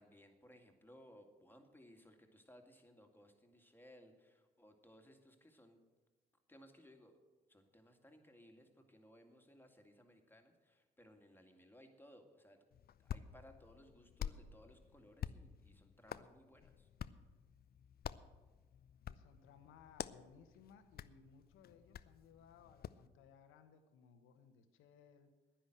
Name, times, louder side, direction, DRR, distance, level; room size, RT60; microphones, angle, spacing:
voice 1, 0.0-5.8 6.5-7.2 7.5-12.6 13.0-16.9, equal, 10° left, 4 dB, 2.2 m, -62 dB
Hands, 12.7-23.1, left 9 dB, 45° left, 0.5 m, -50 dB
voice 2, 19.0-25.3, left 7 dB, 75° left, 8 dB, 1.2 m, -63 dB
10.5 x 10.0 x 7.8 m, 1.3 s
hypercardioid pair, 50°, 21 cm